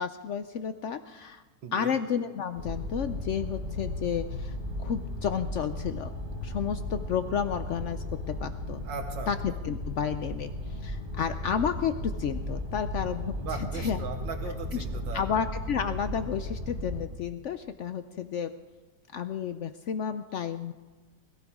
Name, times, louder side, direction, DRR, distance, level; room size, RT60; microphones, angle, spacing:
voice 1, 0.0-1.4 1.7-6.1 6.4-8.0 8.4-8.8 9.3-9.4 9.6-14.0 15.1-18.5 19.1-20.7, left 7 dB, 90° left, 10 dB, 0.6 m, -31 dB
voice 2, 1.6-2.0 8.8-9.3 13.4-15.3, right 5 dB, 85° right, 5 dB, 1.9 m, -38 dB
sound 1, 2.5-17.0, left 1 dB, 30° right, 4.5 m, -35 dB
21.5 x 14.5 x 3.6 m, 1.3 s
omnidirectional pair, 2.0 m